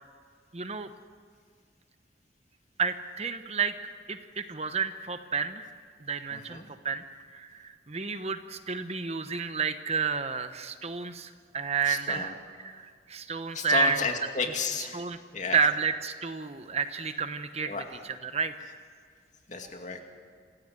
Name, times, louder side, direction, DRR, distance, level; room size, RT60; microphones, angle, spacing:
voice 1, 0.5-0.9 2.8-3.8 4.1-5.7 6.0-7.0 7.3-12.3 12.6-14.0 14.9-15.2 15.5-17.8 18.0-18.5, right 5 dB, 35° right, 9 dB, 1.0 m, -30 dB
voice 2, 6.3-6.6 11.9-12.3 13.5-15.0 15.3-15.6 17.6-17.8 19.5-20.0, left 4 dB, 45° left, 3 dB, 2.5 m, -32 dB
27.0 x 16.0 x 7.8 m, 2.1 s
head